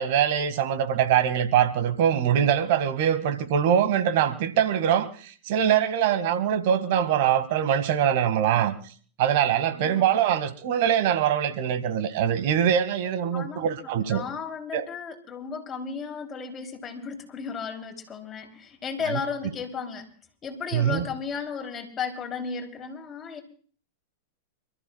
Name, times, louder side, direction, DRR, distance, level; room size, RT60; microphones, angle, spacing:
voice 1, 0.0-8.7 9.2-14.2 14.7-14.9 19.1-19.2 20.7-21.1, right 9 dB, 60° right, 1.9 m, -23 dB
voice 2, 9.7-10.1 13.3-20.1 20.4-23.4, left 6 dB, 25° left, 3.2 m, -34 dB
28.0 x 14.0 x 2.3 m
hypercardioid pair, 105°, 0 cm